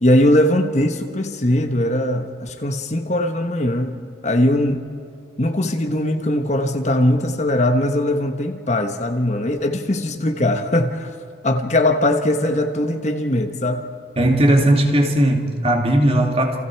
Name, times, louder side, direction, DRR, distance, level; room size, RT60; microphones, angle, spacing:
voice 1, 0.0-4.8 5.4-11.1 11.4-13.9, left 1 dB, 35° left, 5 dB, 1.3 m, -20 dB
voice 2, 14.2-16.6, right 1 dB, 30° right, 2 dB, 2.3 m, -17 dB
29.0 x 27.5 x 4.8 m, 2.3 s
head